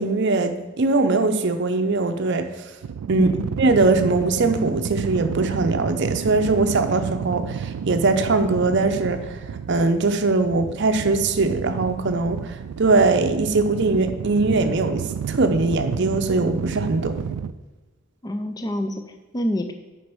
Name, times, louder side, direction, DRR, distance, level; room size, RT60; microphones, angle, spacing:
voice 1, 0.0-2.5 3.1-9.2 9.7-17.2, right 3 dB, 50° right, 7 dB, 0.6 m, -21 dB
sound 1, 2.8-17.5, right 7 dB, 90° right, 0.3 m, -31 dB
voice 2, 3.1-3.5 18.2-19.7, left 1 dB, 15° left, 6 dB, 0.4 m, -27 dB
6.3 x 5.2 x 6.1 m, 1.2 s
head